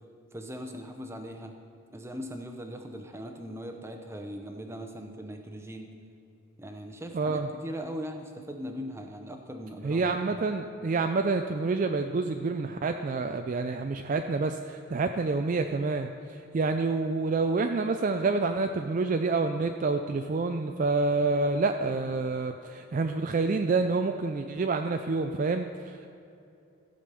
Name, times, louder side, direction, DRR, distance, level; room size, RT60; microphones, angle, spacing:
voice 1, 0.3-1.6 1.9-6.0 6.6-10.1, equal, 10° right, 4 dB, 0.7 m, -40 dB
voice 2, 7.1-7.5 9.8-26.1, right 3 dB, 35° right, 6 dB, 0.3 m, -28 dB
14.5 x 5.2 x 6.8 m, 2.6 s
head